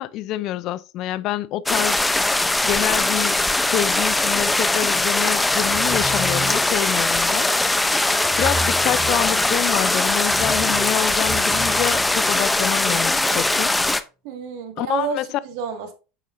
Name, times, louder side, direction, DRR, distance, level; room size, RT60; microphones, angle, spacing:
voice 1, 0.0-2.0 2.7-3.4 3.7-7.8 8.4-13.7 14.8-15.3, left 14 dB, 55° left, 0.5 m, -27 dB
sound 1, 1.7-14.0, left 2 dB, 10° left, 0.7 m, -20 dB
sound 2, 5.6-6.9 8.2-9.7 10.2-12.7, right 1 dB, 30° right, 1.9 m, -34 dB
voice 2, 14.2-15.9, right 6 dB, 65° right, 1.9 m, -29 dB
8.8 x 6.1 x 2.6 m
hypercardioid pair, 90°, 0 cm